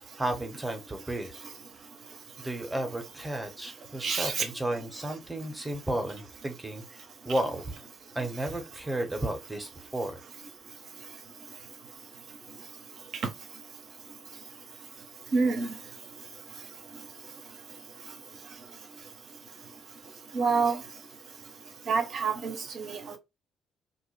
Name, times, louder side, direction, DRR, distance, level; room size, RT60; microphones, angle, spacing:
voice 1, 0.0-1.4 2.4-7.7 8.1-10.2, right 1 dB, 15° right, 0.9 m, -33 dB
voice 2, 4.0-4.4 15.3-15.7 20.3-20.8 21.9-23.2, right 4 dB, 50° right, 0.7 m, -27 dB
2.3 x 2.1 x 3.1 m
figure-of-eight pair, 45°, 0 cm